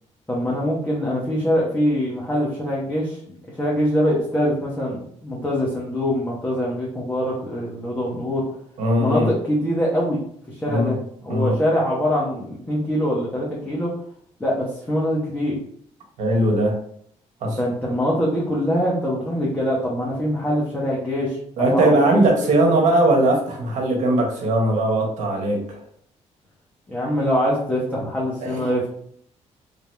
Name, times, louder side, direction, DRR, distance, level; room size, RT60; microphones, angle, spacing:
voice 1, 0.3-3.2 3.5-8.4 9.0-10.2 10.5-11.0 11.2-13.9 14.4-15.6 17.6-21.4 21.7-22.5 26.9-28.9, equal, 15° left, -6 dB, 1.1 m, -23 dB
voice 2, 8.8-9.3 10.7-10.9 11.3-11.5 16.2-16.8 17.4-17.6 21.6-25.8 28.4-28.9, right 1 dB, 75° right, 1 dB, 1.2 m, -20 dB
3.4 x 2.8 x 3.4 m, 0.65 s
cardioid pair, 110°, 12 cm